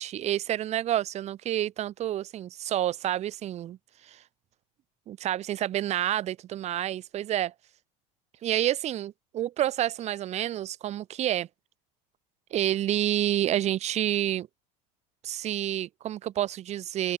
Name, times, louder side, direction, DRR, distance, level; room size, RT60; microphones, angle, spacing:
voice 1, 0.0-3.8 4.0-4.2 5.1-7.5 8.4-11.5 12.5-14.5 15.2-17.2, right 12 dB, 40° right, 0.8 m, -29 dB
open air
supercardioid pair, 115°, 17 cm